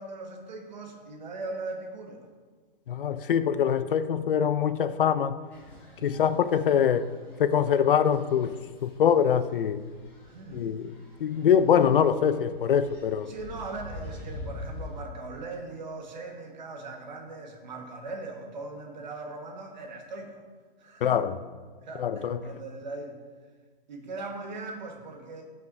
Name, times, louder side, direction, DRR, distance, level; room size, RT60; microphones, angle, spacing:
voice 1, 0.0-2.3 5.9-6.2 10.2-10.7 13.3-20.4 20.8-21.2 21.8-23.2 23.9-25.4, right 3 dB, 50° right, 2 dB, 1.5 m, -39 dB
voice 2, 2.9-5.4 6.0-7.1 7.4-8.6 8.8-9.8 10.5-10.9 11.2-13.3 21.0-21.4 22.0-22.4, left 8 dB, 65° left, 13 dB, 0.5 m, -23 dB
sound 1, 5.5-15.0, left 2 dB, 5° left, 1.0 m, -45 dB
14.0 x 5.9 x 2.6 m, 1.4 s
hypercardioid pair, 180°, 29 cm